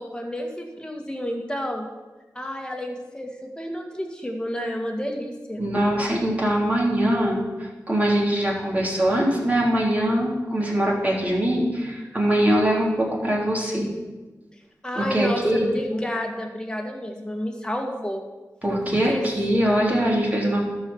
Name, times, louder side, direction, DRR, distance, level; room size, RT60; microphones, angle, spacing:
voice 1, 0.0-1.9 2.3-5.6 14.8-18.2 18.9-19.3, equal, 15° left, 2 dB, 2.0 m, -30 dB
voice 2, 5.6-13.9 14.9-15.7 18.6-20.7, right 1 dB, 25° right, -3 dB, 3.4 m, -22 dB
12.5 x 5.1 x 7.1 m, 1.2 s
cardioid pair, 55°, 7 cm